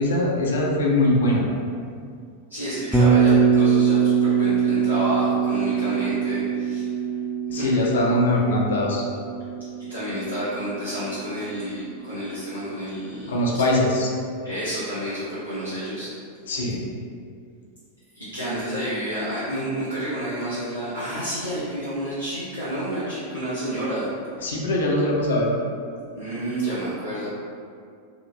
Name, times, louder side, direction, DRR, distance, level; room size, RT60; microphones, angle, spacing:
voice 1, 0.0-1.4 7.5-9.0 13.3-14.1 16.5-16.8 24.4-25.5, left 1 dB, 60° left, -2 dB, 0.5 m, -21 dB
voice 2, 2.5-7.0 7.5-7.7 9.9-13.4 14.4-16.1 18.1-24.1 26.1-27.3, right 1 dB, 90° right, -14 dB, 0.7 m, -29 dB
Bass guitar, 2.9-11.0, right 6 dB, 5° left, 0.3 m, -22 dB
2.8 x 2.5 x 2.5 m, 2.3 s
figure-of-eight pair, 90°, 0 cm